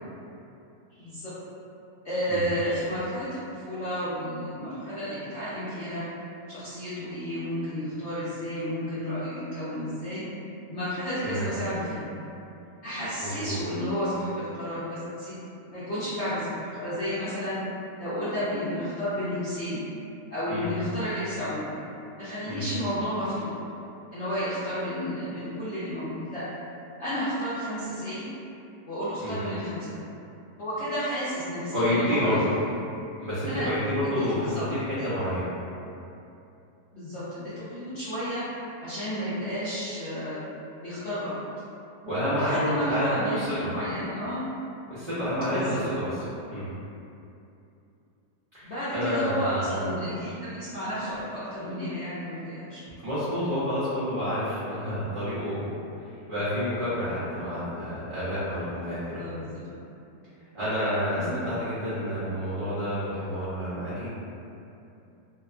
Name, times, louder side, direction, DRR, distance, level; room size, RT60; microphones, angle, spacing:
voice 1, 0.9-1.3 2.0-6.0 6.5-10.2 10.7-12.2 12.8-15.3 15.7-17.6 18.0-19.9 20.3-21.7 22.2-23.7 24.1-26.5 27.0-28.2 28.9-29.9 30.6-32.6 33.5-33.7 34.0-35.1 36.9-38.4 38.8-40.4 40.8-41.4 42.3-44.4 45.5-45.8 48.6-52.8 59.2-59.6 61.1-61.4, equal, 70° left, -13 dB, 0.6 m, -32 dB
voice 2, 13.2-13.6 20.5-20.7 22.5-22.6 29.2-29.4 31.7-32.4 33.2-35.5 42.0-43.7 44.9-45.8 46.5-46.7 48.5-49.7 53.0-55.7 56.3-59.2 60.5-64.1, equal, 75° right, -13 dB, 0.4 m, -29 dB
2.8 x 2.1 x 2.3 m, 2.7 s
omnidirectional pair, 1.8 m